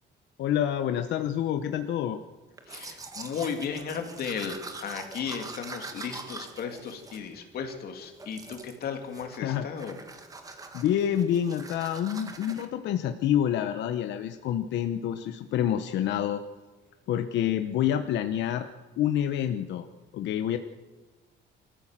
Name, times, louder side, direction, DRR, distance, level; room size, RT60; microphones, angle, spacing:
voice 1, 0.4-2.2 9.4-9.6 10.7-16.4 17.1-18.7 19.0-19.9 20.1-20.6, left 10 dB, 70° left, 8 dB, 1.0 m, -27 dB
Domestic sounds home sounds, 2.6-7.8 8.2-8.8 9.1-9.5 9.8-12.7, right 3 dB, 20° right, 1.5 m, -43 dB
voice 2, 2.7-10.0 10.5-10.6, left 6 dB, 55° left, 5 dB, 2.8 m, -35 dB
25.0 x 14.5 x 7.5 m, 1.2 s
cardioid pair, 175°, 19 cm